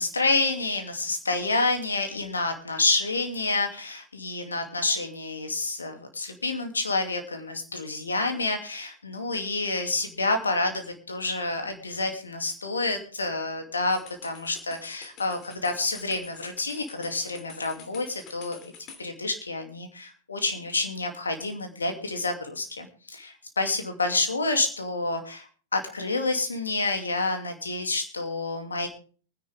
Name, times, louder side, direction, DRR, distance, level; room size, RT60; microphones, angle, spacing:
voice 1, 0.0-18.6 19.0-28.9, left 3 dB, 85° left, 5 dB, 2.6 m, -28 dB
sound 1, 13.9-19.0, left 6 dB, 40° left, 2.8 m, -48 dB
23.5 x 10.5 x 3.5 m, 0.41 s
figure-of-eight pair, 100°, 0 cm